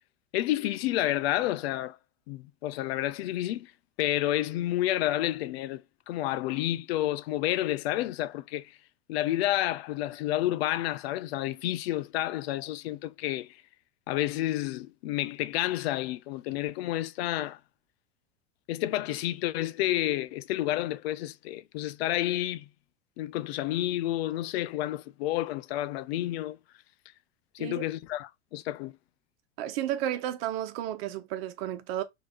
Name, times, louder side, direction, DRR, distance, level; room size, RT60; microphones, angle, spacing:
voice 1, 0.3-2.0 2.3-3.7 4.0-5.8 6.1-8.7 9.1-13.5 14.1-17.6 18.7-22.7 23.2-26.6 27.5-28.9, left 14 dB, 55° left, 0.6 m, -30 dB
voice 2, 29.6-32.0, right 12 dB, 50° right, 1.1 m, -32 dB
4.2 x 2.9 x 4.3 m
figure-of-eight pair, 85°, 37 cm